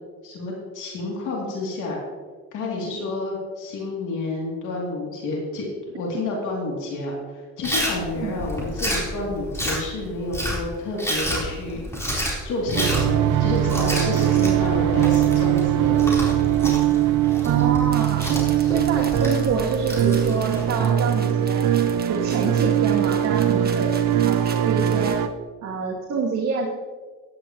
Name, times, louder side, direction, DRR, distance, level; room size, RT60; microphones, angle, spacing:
voice 1, 0.2-2.0 2.5-5.7 6.0-12.1 12.4-16.3 23.5-23.6, left 2 dB, 85° left, -3 dB, 2.9 m, -30 dB
Chewing mastication, 7.6-20.6, equal, 10° left, 3.9 m, -30 dB
sound 1, 12.7-25.3, right 11 dB, 80° right, 0.8 m, -21 dB
voice 2, 17.4-18.3 18.6-21.7 22.1-23.9 24.2-25.2 25.6-26.7, right 4 dB, 60° right, -3 dB, 2.1 m, -27 dB
sound 2, 17.9-25.2, right 4 dB, 30° right, 1.6 m, -41 dB
15.0 x 10.5 x 3.1 m, 1.4 s
cardioid pair, 90°, 30 cm